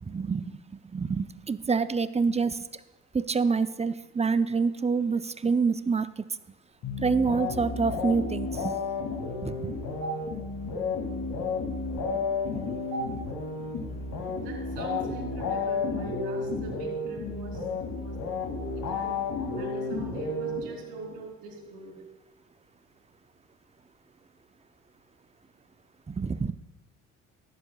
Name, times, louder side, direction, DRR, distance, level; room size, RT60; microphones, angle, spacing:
voice 1, 0.0-2.6 3.1-6.2 7.0-8.7 9.4-9.8 26.1-26.5, right 5 dB, 15° right, 13 dB, 0.6 m, -27 dB
sound 1, 6.8-21.1, left 4 dB, 55° left, 2.6 m, -32 dB
voice 2, 14.4-17.6 17.9-18.1 18.9-19.2 19.6-22.0, right 4 dB, 70° right, 0 dB, 3.8 m, -41 dB
18.0 x 11.5 x 2.4 m, 1.0 s
hypercardioid pair, 55°, 41 cm